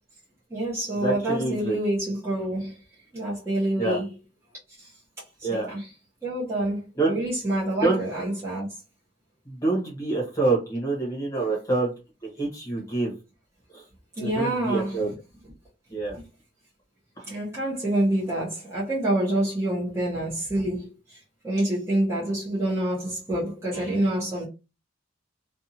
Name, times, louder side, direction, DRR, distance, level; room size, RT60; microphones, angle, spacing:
voice 1, 0.5-2.8 3.1-4.1 4.8-5.0 5.4-5.9 6.2-8.7 11.4-11.5 14.2-15.0 16.1-16.2 17.3-24.5, right 1 dB, 15° right, 0.8 m, -27 dB
voice 2, 1.0-1.8 3.8-4.0 5.4-5.7 7.0-7.2 7.8-8.0 9.5-11.9 12.2-13.1 13.7-13.8 14.2-15.1 15.9-16.2 17.2-17.3, right 3 dB, 20° left, 1.0 m, -26 dB
2.6 x 2.4 x 2.8 m
head